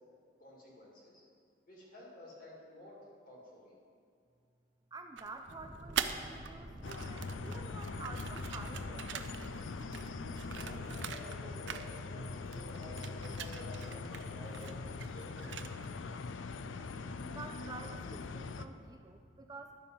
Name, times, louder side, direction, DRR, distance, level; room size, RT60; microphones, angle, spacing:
voice 1, 0.4-1.2 1.7-2.9 3.3-3.7 10.3-15.9, left 1 dB, 45° left, -4 dB, 2.4 m, -52 dB
voice 2, 4.9-9.3 17.2-19.8, right 3 dB, 20° right, 6 dB, 0.3 m, -49 dB
sound 1, 5.2-6.5 6.8-11.4 11.7-12.3 12.5-16.0, right 8 dB, 75° right, 0.5 m, -43 dB
sound 2, 5.5-10.8, right 1 dB, 45° right, 0.8 m, -50 dB
sound 3, 6.8-18.7, left 4 dB, 90° left, 0.5 m, -42 dB
11.5 x 6.8 x 5.4 m, 2.2 s
head